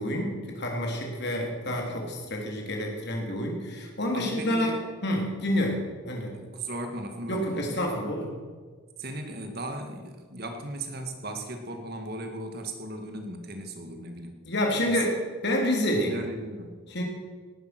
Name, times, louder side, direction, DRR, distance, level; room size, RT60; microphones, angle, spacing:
voice 1, 0.0-4.8 5.0-5.8 6.1-6.3 7.3-8.3 14.5-16.1 16.9-17.0, left 1 dB, 55° left, 1 dB, 3.6 m, -28 dB
voice 2, 1.7-2.2 4.1-4.8 6.3-7.8 9.0-14.4 14.8-15.0 16.0-16.8, right 1 dB, 50° right, 5 dB, 2.1 m, -37 dB
18.5 x 11.0 x 6.2 m, 1.5 s
head